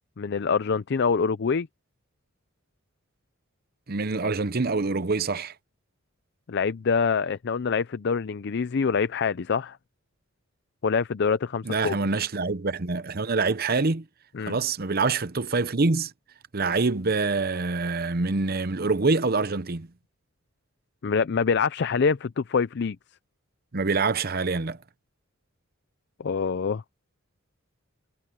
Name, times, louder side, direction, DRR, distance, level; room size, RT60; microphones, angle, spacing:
voice 1, 0.2-1.7 6.5-9.8 10.8-12.0 14.3-14.5 21.0-23.0 26.2-26.8, left 5 dB, 55° left, 0.5 m, -25 dB
voice 2, 3.9-5.5 11.6-14.0 14.4-16.1 16.5-19.9 23.7-24.8, right 3 dB, 45° right, 0.8 m, -25 dB
head